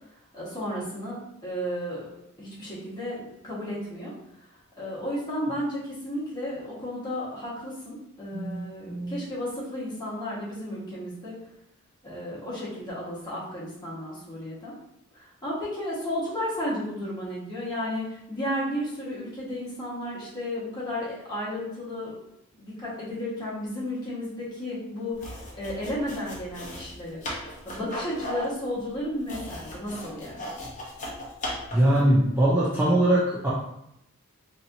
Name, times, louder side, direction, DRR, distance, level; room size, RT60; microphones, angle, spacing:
voice 1, 0.3-2.1 2.4-4.1 4.8-11.4 12.0-14.7 15.1-22.1 22.5-27.2 27.6-30.4, left 1 dB, 20° left, -8 dB, 1.4 m, -33 dB
voice 2, 8.3-9.2 31.7-33.5, right 1 dB, 10° right, -7 dB, 0.5 m, -22 dB
sound 1, 25.1-32.2, left 1 dB, 35° left, 0.8 m, -37 dB
4.3 x 2.9 x 2.6 m, 0.79 s
head